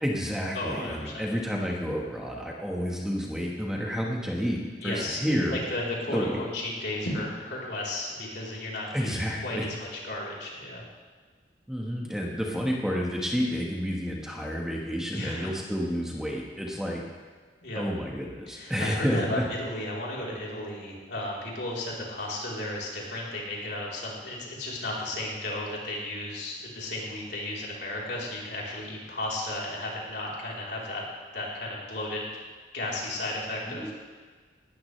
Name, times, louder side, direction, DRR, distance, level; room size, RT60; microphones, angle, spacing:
voice 1, 0.0-5.6 6.1-6.4 8.9-9.7 11.7-17.0 17.7-19.5 33.7-33.9, equal, 5° right, -2 dB, 1.4 m, -30 dB
voice 2, 0.5-1.3 4.8-10.8 15.1-15.5 17.6-17.8 18.5-31.0 31.3-32.2 32.7-33.9, left 1 dB, 65° left, -4 dB, 3.8 m, -34 dB
19.5 x 13.0 x 3.3 m, 1.5 s
head